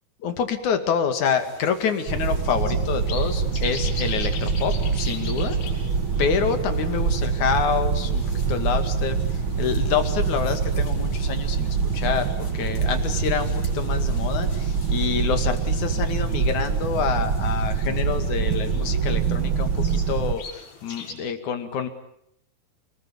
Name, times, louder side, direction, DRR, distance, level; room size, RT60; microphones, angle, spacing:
voice 1, 0.2-5.6 6.2-9.2 9.6-21.9, left 7 dB, 55° left, 8 dB, 3.4 m, -27 dB
sound 1, 1.2-21.1, left 4 dB, 75° left, 7.8 m, -43 dB
sound 2, 2.1-20.4, right 5 dB, 65° right, 1.3 m, -25 dB
29.0 x 20.5 x 8.8 m, 0.73 s
omnidirectional pair, 4.4 m